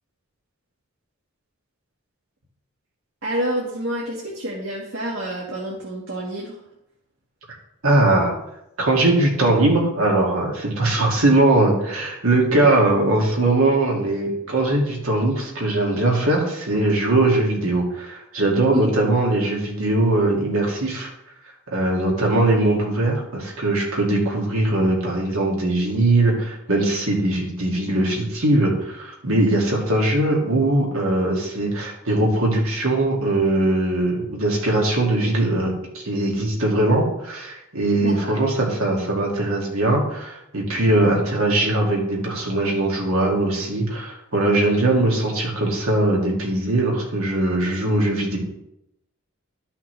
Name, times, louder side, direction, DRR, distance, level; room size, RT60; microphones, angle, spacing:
voice 1, 3.2-6.6 18.7-18.9 38.0-38.4, right 1 dB, 70° right, -3 dB, 1.5 m, -28 dB
voice 2, 7.8-8.3 8.8-21.1 21.7-48.4, right 2 dB, 90° right, -1 dB, 2.2 m, -20 dB
12.5 x 5.7 x 3.2 m, 0.82 s
head